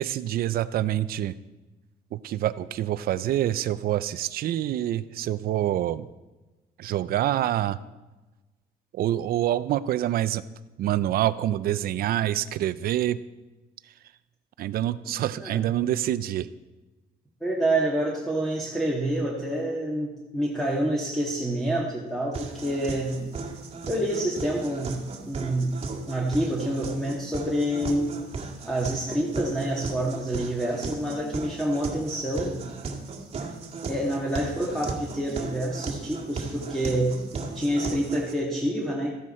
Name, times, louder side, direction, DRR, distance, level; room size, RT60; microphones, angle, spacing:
voice 1, 0.0-1.3 2.1-6.1 6.8-7.8 8.9-10.4 10.8-13.2 14.6-16.5, right 12 dB, 60° right, 15 dB, 0.6 m, -26 dB
voice 2, 15.3-15.7 17.4-23.2 23.9-25.0 25.3-25.7 26.1-28.2 28.7-32.6 33.9-37.2 37.5-39.1, right 1 dB, ahead, -4 dB, 1.9 m, -27 dB
sound 1, 22.3-38.3, right 4 dB, 35° right, 1.9 m, -36 dB
14.0 x 10.0 x 4.4 m, 1.1 s
cardioid pair, 110°, 17 cm